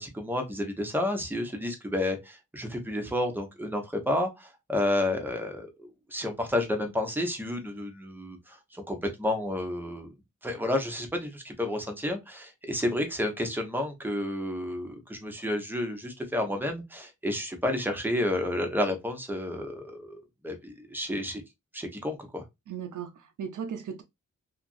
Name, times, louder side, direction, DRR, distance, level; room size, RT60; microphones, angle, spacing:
voice 1, 0.0-10.1 10.4-20.2 20.4-21.4 21.7-22.4, left 1 dB, 5° right, 0.8 m, -31 dB
voice 2, 22.7-24.0, right 7 dB, 75° right, 0.6 m, -37 dB
2.9 x 2.5 x 2.5 m
wide cardioid pair, 90°, 31 cm